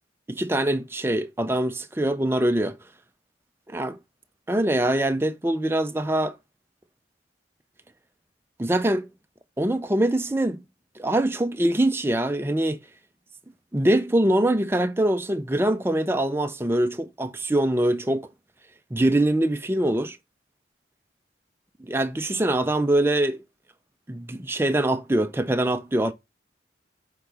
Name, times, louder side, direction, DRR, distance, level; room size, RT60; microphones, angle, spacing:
voice 1, 0.3-2.8 3.7-4.0 4.5-6.4 8.6-9.1 9.6-10.6 11.0-12.8 13.7-18.3 18.9-20.2 21.8-23.4 24.1-26.1, right 1 dB, 15° right, 0.5 m, -23 dB
6.9 x 3.9 x 4.6 m
head